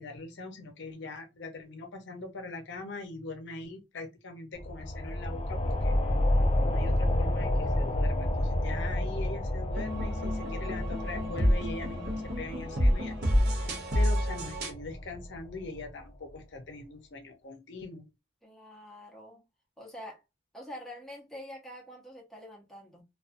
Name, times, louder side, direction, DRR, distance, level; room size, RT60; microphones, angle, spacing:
voice 1, 0.0-5.9 6.7-18.1, left 3 dB, 70° left, 0.6 m, -42 dB
sound 1, 4.5-15.8, left 1 dB, 30° left, 0.4 m, -30 dB
sound 2, 9.7-14.7, equal, 60° right, 0.7 m, -28 dB
voice 2, 18.4-19.4 19.8-20.2 20.5-23.0, equal, ahead, 0.7 m, -46 dB
2.4 x 2.3 x 2.5 m
head